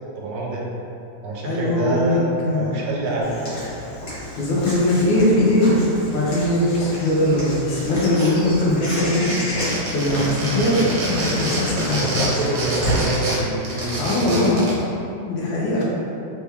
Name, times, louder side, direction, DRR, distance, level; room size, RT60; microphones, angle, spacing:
voice 1, 0.2-0.6 1.2-3.3 11.7-14.1 14.3-14.5, right 3 dB, 80° right, -4 dB, 1.3 m, -26 dB
voice 2, 1.4-2.2 2.4-2.8 4.4-5.7 6.0-9.3 9.9-12.3 14.0-14.6 15.3-15.8, left 1 dB, 80° left, -5 dB, 1.4 m, -20 dB
Walk footsteps / Bird vocalization bird call bird song, 3.2-13.2, left 1 dB, 60° left, 1.8 m, -31 dB
sound 1, 7.9-8.6 8.8-14.8, right 1 dB, 65° right, 0.8 m, -27 dB
3.6 x 2.2 x 3.4 m, 2.7 s
omnidirectional pair, 2.1 m